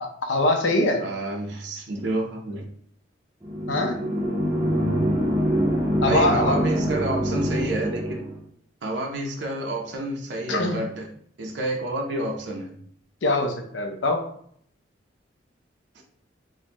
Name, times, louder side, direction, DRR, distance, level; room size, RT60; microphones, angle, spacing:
voice 1, 0.0-1.0 3.7-4.0 6.0-6.7 10.5-10.9 13.2-14.3, left 2 dB, 85° left, 4 dB, 0.6 m, -23 dB
voice 2, 1.0-2.7 6.1-8.3 8.8-11.1 11.4-12.8, right 2 dB, 70° right, 1 dB, 0.5 m, -29 dB
sound 1, 3.4-8.4, equal, 20° right, 0.4 m, -25 dB
3.4 x 2.1 x 2.8 m, 0.63 s
head